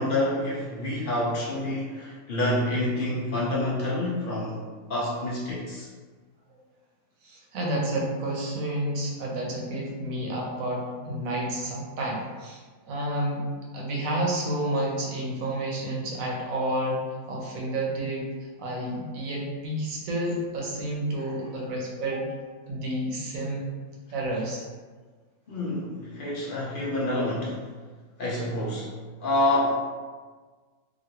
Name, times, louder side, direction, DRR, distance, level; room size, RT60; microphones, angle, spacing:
voice 1, 0.0-5.9 21.2-21.3 25.5-27.6 28.2-28.9 29.2-29.7, left 1 dB, 55° left, -5 dB, 0.6 m, -28 dB
voice 2, 7.2-12.6 12.9-13.5 13.7-18.3 18.6-22.2 22.7-23.7 24.1-24.6, right 1 dB, 70° right, -2 dB, 1.1 m, -30 dB
3.0 x 2.6 x 2.8 m, 1.4 s
omnidirectional pair, 1.6 m